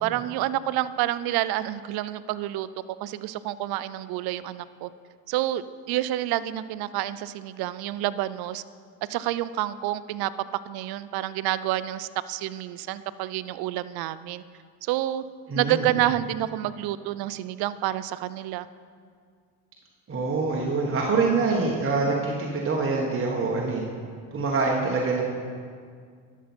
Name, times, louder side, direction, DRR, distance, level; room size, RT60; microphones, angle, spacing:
voice 1, 0.0-2.7 3.0-4.9 5.3-8.6 9.1-10.3 10.7-14.4 14.8-15.2 15.5-18.7, right 14 dB, 60° right, 16 dB, 0.5 m, -28 dB
voice 2, 15.5-15.9 20.1-23.8 24.3-25.2, right 3 dB, 30° right, -2 dB, 1.4 m, -25 dB
12.0 x 7.2 x 4.4 m, 2.1 s
supercardioid pair, 70°, 41 cm